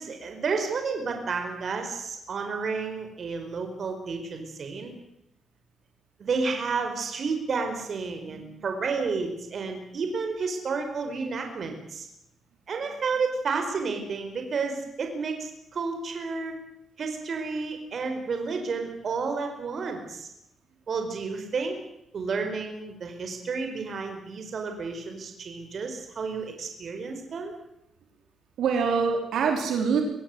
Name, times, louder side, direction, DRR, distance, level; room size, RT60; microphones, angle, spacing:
voice 1, 0.0-4.9 6.2-12.1 12.7-16.5 17.0-20.3 20.9-21.8 22.1-27.5, right 4 dB, 45° right, 5 dB, 5.0 m, -31 dB
voice 2, 8.3-8.7 28.6-30.1, right 5 dB, 75° right, 3 dB, 4.7 m, -25 dB
24.5 x 17.0 x 8.1 m, 0.82 s
cardioid pair, 135°, 0 cm